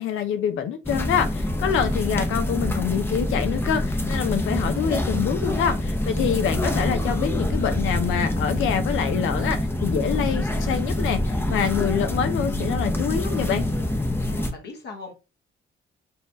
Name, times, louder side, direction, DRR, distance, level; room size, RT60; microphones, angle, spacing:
voice 1, 0.0-13.7, left 8 dB, 80° left, 0.7 m, -26 dB
sound 1, 0.8-14.5, left 1 dB, 10° left, 0.7 m, -25 dB
voice 2, 14.3-15.1, left 3 dB, 60° left, 1.2 m, -39 dB
4.3 x 2.4 x 3.9 m
cardioid pair, 90°, 20 cm